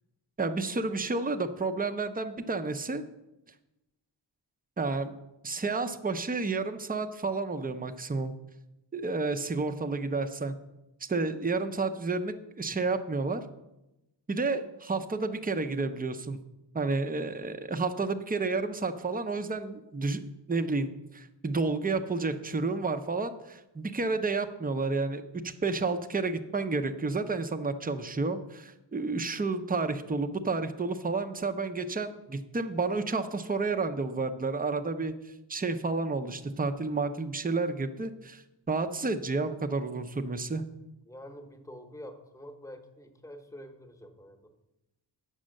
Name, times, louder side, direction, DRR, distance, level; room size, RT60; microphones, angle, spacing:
voice 1, 0.4-3.0 4.8-5.2 5.4-8.3 8.9-10.6 11.1-13.4 14.3-16.4 16.7-38.4 38.7-40.6, right 3 dB, 20° right, 8 dB, 0.6 m, -31 dB
voice 2, 41.0-44.5, equal, 5° left, 6 dB, 1.0 m, -47 dB
8.8 x 6.3 x 6.4 m, 0.95 s
wide cardioid pair, 120°, 44 cm